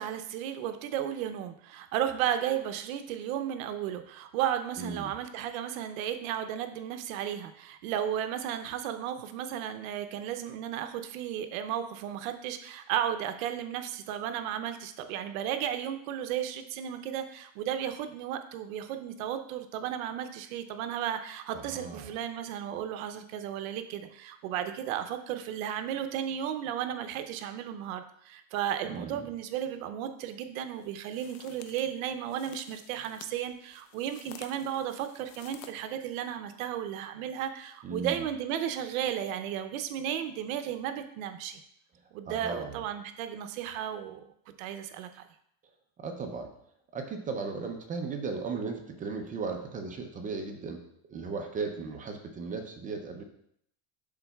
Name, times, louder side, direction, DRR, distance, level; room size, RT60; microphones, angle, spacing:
voice 1, 0.0-41.6 42.1-44.2 44.6-45.2, right 10 dB, 80° right, 8 dB, 0.7 m, -34 dB
voice 2, 4.8-5.1 21.5-22.1 28.9-29.3 37.8-38.2 42.3-42.8 46.0-46.5 46.9-50.8 51.1-53.2, right 4 dB, 20° right, 4 dB, 0.5 m, -36 dB
sound 1, 30.8-35.7, left 9 dB, 65° left, 0.7 m, -52 dB
11.5 x 3.9 x 2.3 m, 0.69 s
cardioid pair, 155°, 41 cm